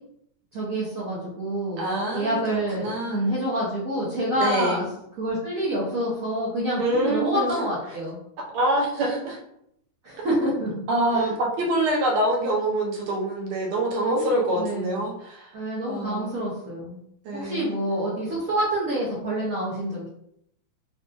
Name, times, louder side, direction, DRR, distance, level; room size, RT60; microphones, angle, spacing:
voice 1, 0.5-4.8 5.2-8.2 10.0-10.8 11.1-11.3 14.6-15.0 15.5-17.0 17.3-20.1, right 1 dB, 55° right, -7 dB, 1.0 m, -27 dB
voice 2, 1.8-3.2 4.4-4.8 6.8-7.5 8.5-9.4 10.9-15.5 15.9-16.3 17.2-17.8, right 1 dB, 85° right, -1 dB, 1.7 m, -25 dB
4.0 x 2.6 x 2.3 m, 0.74 s
omnidirectional pair, 2.3 m